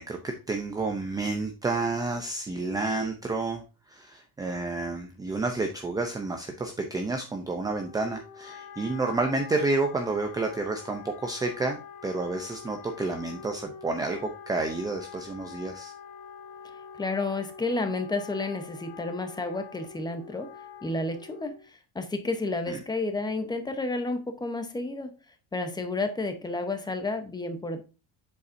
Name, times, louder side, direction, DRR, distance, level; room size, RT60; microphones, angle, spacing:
voice 1, 0.0-3.6 3.9-15.9 22.7-22.8, right 3 dB, 10° right, 4 dB, 0.5 m, -30 dB
Wind instrument woodwind instrument, 7.6-21.7, left 6 dB, 50° left, 1.2 m, -45 dB
voice 2, 17.0-20.5 20.8-21.5 21.9-25.1 25.5-27.8, left 2 dB, 10° left, 7 dB, 0.9 m, -31 dB
8.1 x 7.0 x 2.6 m, 0.31 s
cardioid pair, 165°, 42 cm